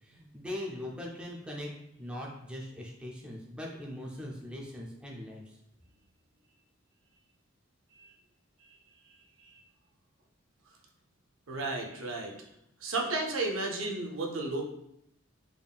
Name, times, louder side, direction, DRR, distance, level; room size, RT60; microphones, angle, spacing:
voice 1, 0.0-1.7 2.0-5.6, left 1 dB, 5° right, -2 dB, 0.4 m, -41 dB
voice 2, 11.5-12.4 12.8-14.6, right 2 dB, 80° right, 2 dB, 0.6 m, -33 dB
3.5 x 3.5 x 2.3 m, 0.79 s
head